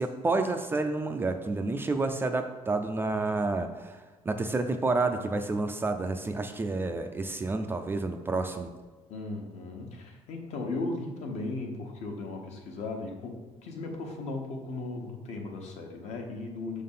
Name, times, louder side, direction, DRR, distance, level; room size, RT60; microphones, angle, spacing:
voice 1, 0.0-8.7, right 3 dB, 15° right, 6 dB, 0.4 m, -29 dB
voice 2, 9.1-16.8, left 2 dB, 60° left, 2 dB, 1.2 m, -36 dB
6.5 x 3.8 x 5.5 m, 1.3 s
cardioid pair, 155°, 13 cm